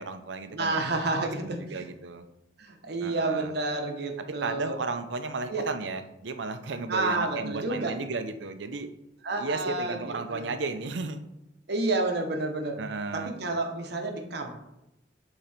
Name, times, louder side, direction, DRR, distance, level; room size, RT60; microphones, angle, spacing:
voice 1, 0.0-2.2 3.0-3.5 4.4-8.9 9.3-11.2 12.8-13.3, right 3 dB, 85° right, 9 dB, 0.6 m, -34 dB
voice 2, 0.5-1.9 2.6-4.8 5.5-5.6 6.9-8.0 9.2-10.5 11.7-12.8 13.1-14.5, right 2 dB, 65° right, 4 dB, 1.1 m, -30 dB
6.8 x 3.9 x 4.3 m, 0.90 s
head